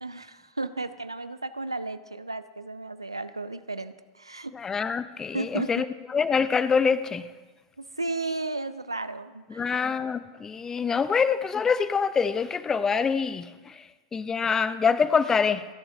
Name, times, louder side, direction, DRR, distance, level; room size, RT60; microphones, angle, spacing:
voice 1, 0.0-4.5 5.3-5.9 7.8-9.7, right 2 dB, 90° right, 13 dB, 0.5 m, -34 dB
voice 2, 4.5-7.3 9.5-15.7, left 5 dB, 20° left, 14 dB, 0.7 m, -25 dB
29.0 x 11.0 x 2.8 m, 1.3 s
figure-of-eight pair, 85°, 2 cm